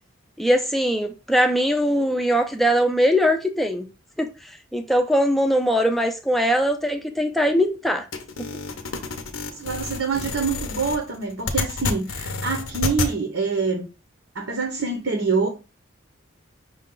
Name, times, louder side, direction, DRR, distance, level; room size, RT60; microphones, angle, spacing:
voice 1, 0.4-3.9 4.2-4.3 4.7-8.1, equal, ahead, 0.5 m, -21 dB
sound 1, 8.1-13.1, left 3 dB, 90° left, 0.7 m, -29 dB
voice 2, 9.5-13.9 14.3-15.5, right 4 dB, 70° right, 0.8 m, -25 dB
5.5 x 2.3 x 3.8 m
head